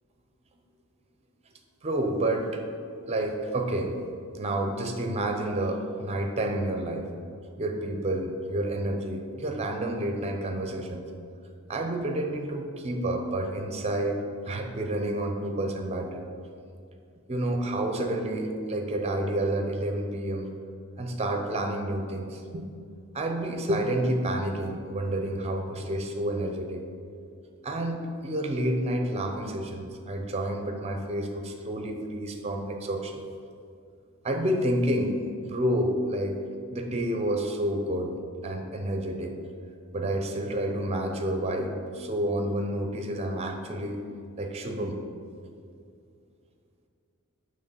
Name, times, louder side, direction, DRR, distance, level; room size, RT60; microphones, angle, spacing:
voice 1, 1.8-2.6 3.1-3.9 4.3-7.1 7.6-11.0 11.7-14.2 14.4-16.3 17.3-20.5 21.0-22.7 23.1-26.8 27.6-33.2 34.2-36.4 36.7-38.1 38.4-39.4 39.9-44.0 44.4-45.0, right 1 dB, 30° right, 4 dB, 0.6 m, -29 dB
6.6 x 3.2 x 5.5 m, 2.4 s
head